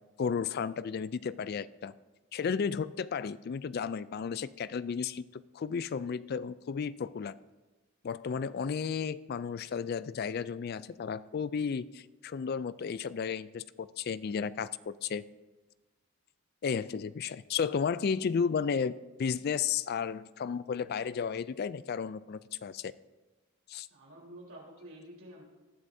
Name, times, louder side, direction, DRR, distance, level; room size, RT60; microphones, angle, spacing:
voice 1, 0.2-1.9 2.3-5.2 5.5-7.3 8.0-15.2 16.6-18.9 19.2-22.9 23.7-23.9, left 6 dB, 45° left, 16 dB, 0.3 m, -33 dB
voice 2, 23.9-25.4, right 1 dB, 75° right, -3 dB, 3.8 m, -49 dB
19.0 x 11.5 x 2.7 m, 1.2 s
head